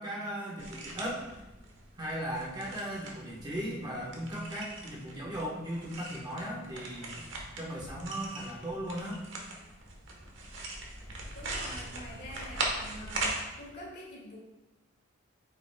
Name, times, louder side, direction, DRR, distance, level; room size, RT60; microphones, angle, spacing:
voice 1, 0.0-1.4 1.9-7.3 7.6-9.2, equal, 20° right, -3 dB, 1.3 m, -37 dB
sound 1, 0.6-13.4, right 2 dB, 70° right, 1.3 m, -40 dB
voice 2, 11.3-14.4, left 1 dB, 55° left, -4 dB, 2.4 m, -46 dB
9.0 x 5.9 x 2.4 m, 1.0 s
head